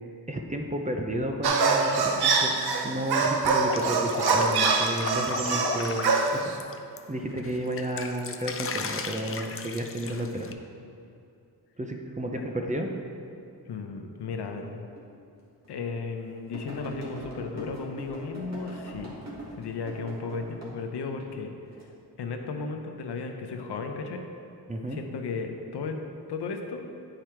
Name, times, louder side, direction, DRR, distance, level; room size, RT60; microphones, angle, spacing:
voice 1, 0.3-6.5 7.1-10.5 11.8-12.9 24.7-25.0, right 1 dB, 20° right, 2 dB, 0.6 m, -32 dB
sound 1, 1.4-6.6, right 4 dB, 75° right, 0.7 m, -24 dB
Drip, 3.4-7.0 7.4-10.5, left 5 dB, 35° left, 0.4 m, -35 dB
voice 2, 13.7-14.9 15.7-19.2 19.6-21.5 22.2-24.2 24.9-26.0 26.3-26.8, left 4 dB, 90° left, 4 dB, 0.8 m, -34 dB
sound 2, 15.0-15.1 15.6-15.7 16.5-20.8 21.2-21.8 22.5-22.8, right 1 dB, 45° right, 1.7 m, -42 dB
9.0 x 4.9 x 4.5 m, 2.6 s
wide cardioid pair, 120°, 39 cm